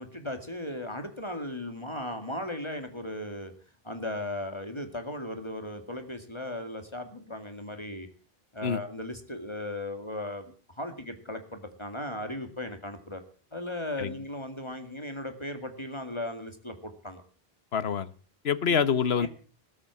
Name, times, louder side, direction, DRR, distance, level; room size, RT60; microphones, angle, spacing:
voice 1, 0.0-3.5 3.8-8.1 8.5-13.2 13.5-17.2 19.2-19.3, left 1 dB, 25° left, 7 dB, 2.1 m, -37 dB
voice 2, 17.7-18.1 18.4-19.3, left 7 dB, 75° left, 16 dB, 1.3 m, -26 dB
19.0 x 8.0 x 8.3 m, 0.40 s
omnidirectional pair, 1.1 m